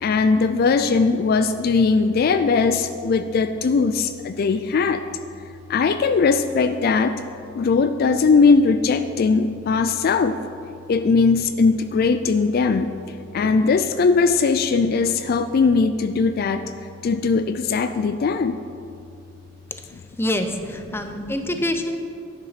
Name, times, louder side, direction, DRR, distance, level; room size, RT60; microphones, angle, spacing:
voice 1, 0.0-5.0 5.7-7.2 7.5-10.4 10.9-12.9 13.3-16.6 17.0-18.6 19.9-20.0 21.1-21.3 21.6-21.7, left 4 dB, 50° left, 9 dB, 0.3 m, -19 dB
voice 2, 20.2-22.0, left 1 dB, 15° left, 6 dB, 0.6 m, -25 dB
10.5 x 6.8 x 5.7 m, 2.5 s
head